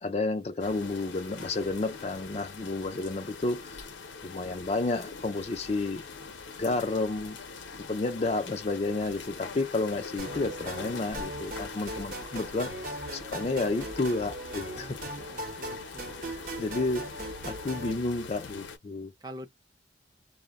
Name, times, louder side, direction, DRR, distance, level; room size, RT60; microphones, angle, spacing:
voice 1, 0.0-3.9 4.2-6.0 6.6-7.4 7.8-15.0 16.2-17.1 17.4-19.1, left 3 dB, 35° left, 0.4 m, -31 dB
sound 1, 0.6-18.8, left 4 dB, 80° left, 0.6 m, -43 dB
sound 2, 10.2-17.9, right 1 dB, 45° right, 0.8 m, -39 dB
voice 2, 14.7-16.3 19.2-19.5, right 1 dB, 20° right, 0.5 m, -46 dB
2.1 x 2.0 x 3.5 m
head